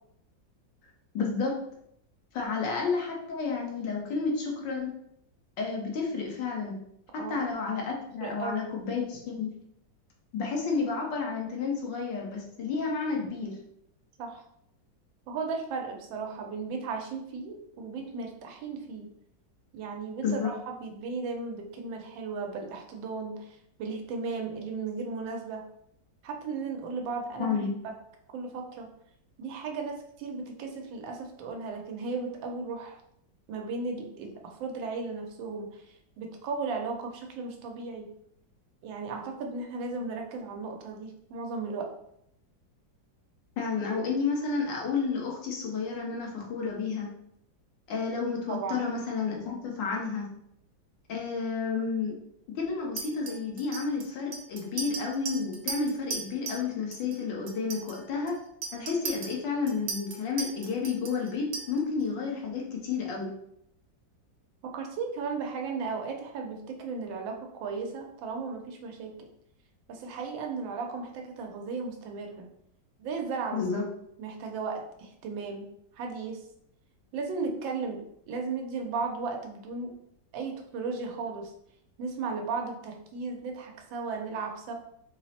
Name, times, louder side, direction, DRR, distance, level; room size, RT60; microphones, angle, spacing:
voice 1, 1.1-1.5 2.3-4.9 5.6-6.8 7.1-9.5 10.3-13.5 20.2-20.5 27.4-27.7 43.6-47.1 47.9-50.3 51.1-52.1 52.6-58.3 58.7-63.3 73.5-73.8, left 5 dB, 75° left, -1 dB, 1.6 m, -31 dB
voice 2, 8.2-8.7 14.2-14.4 15.3-19.1 19.7-25.7 26.2-27.6 27.8-28.0 28.3-28.9 29.4-33.0 33.5-38.1 38.8-41.9 48.5-48.9 64.6-69.3 69.9-72.5 73.0-73.8 74.2-76.4 77.1-79.9 80.3-81.5 82.0-84.7, right 4 dB, 85° right, 3 dB, 1.4 m, -35 dB
Chink clink, 53.0-56.7 56.9-57.2 57.5-62.0, right 4 dB, 60° right, 1.2 m, -38 dB
4.4 x 2.0 x 4.1 m, 0.73 s
omnidirectional pair, 2.0 m